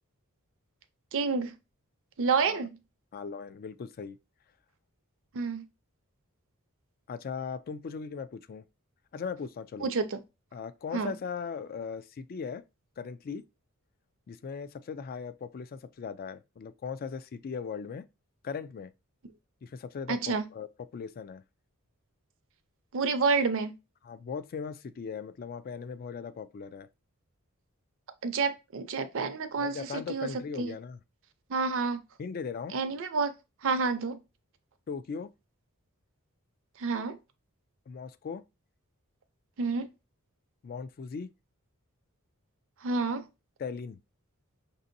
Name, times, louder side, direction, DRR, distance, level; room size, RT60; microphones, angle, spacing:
voice 1, 1.1-1.5 2.2-2.8 5.3-5.6 9.8-10.2 10.9-11.1 20.1-20.4 22.9-23.7 28.2-30.3 30.6-30.7 31.5-32.0 32.7-33.3 33.6-34.2 36.8-37.2 39.6-39.9 42.8-43.2, right 4 dB, 60° right, 0.6 m, -29 dB
voice 2, 3.1-4.2 7.1-8.6 9.1-9.9 10.5-12.6 13.0-13.4 14.3-18.1 18.4-18.9 19.6-21.4 24.0-26.9 29.6-31.0 32.2-32.8 34.9-35.3 37.9-38.4 40.6-41.3 43.6-44.0, left 6 dB, 40° left, 0.3 m, -38 dB
5.8 x 2.7 x 2.6 m
head